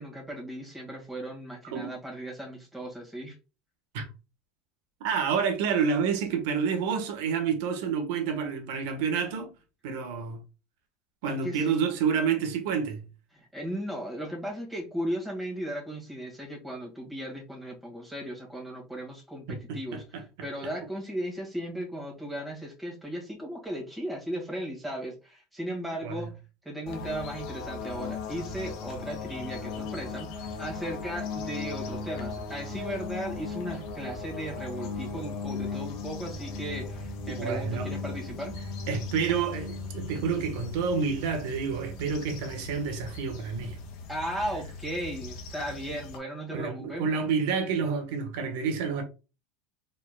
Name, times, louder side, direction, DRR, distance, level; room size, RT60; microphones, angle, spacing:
voice 1, 0.0-3.4 11.3-11.9 13.3-26.4 26.6-38.6 44.1-47.1, right 1 dB, 5° right, 1.9 m, -36 dB
voice 2, 5.0-9.5 9.8-10.4 11.2-13.0 19.5-20.2 20.6-20.7 26.0-26.3 37.3-37.9 38.9-43.8 46.5-49.0, right 6 dB, 75° right, 1.2 m, -29 dB
sound 1, 26.9-46.2, left 4 dB, 60° left, 1.1 m, -38 dB
4.2 x 3.9 x 2.3 m
supercardioid pair, 120°, 0 cm